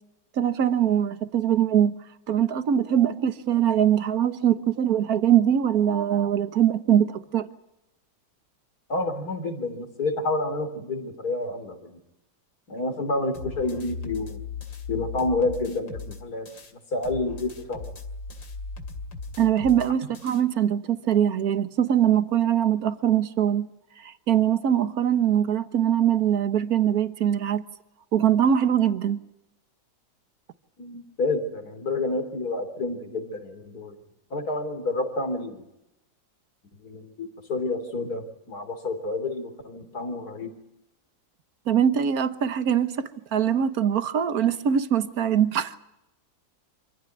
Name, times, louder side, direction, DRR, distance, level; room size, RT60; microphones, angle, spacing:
voice 1, 0.4-1.9 2.3-7.5 19.4-23.7 24.0-27.6 28.1-29.2 41.7-45.7, right 9 dB, 55° right, 1.6 m, -22 dB
voice 2, 8.9-12.0 12.7-14.4 14.9-16.5 16.9-17.9 30.8-34.0 34.3-35.6 36.8-38.2 38.5-40.5, left 2 dB, 50° left, 3.9 m, -29 dB
sound 1, 13.3-16.7 17.0-20.4, left 4 dB, 80° left, 3.2 m, -38 dB
27.0 x 16.5 x 9.4 m
omnidirectional pair, 2.0 m